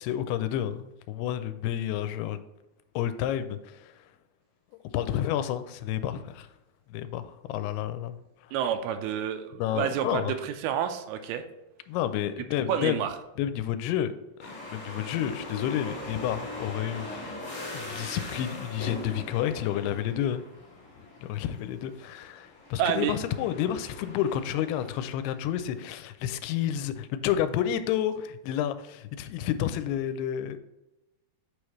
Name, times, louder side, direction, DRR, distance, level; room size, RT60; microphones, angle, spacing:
voice 1, 0.0-2.4 3.0-3.9 4.9-6.5 6.9-8.2 8.5-8.6 9.6-10.3 11.9-13.0 13.4-14.1 14.7-17.4 17.7-20.4 21.2-30.6, left 10 dB, 90° left, 11 dB, 2.6 m, -30 dB
voice 2, 8.5-11.4 12.7-13.1 22.8-23.1, right 9 dB, 85° right, 8 dB, 2.6 m, -29 dB
sound 1, 14.4-25.9, left 2 dB, 55° left, 0.5 m, -41 dB
8.6 x 4.9 x 3.1 m, 0.98 s
omnidirectional pair, 4.5 m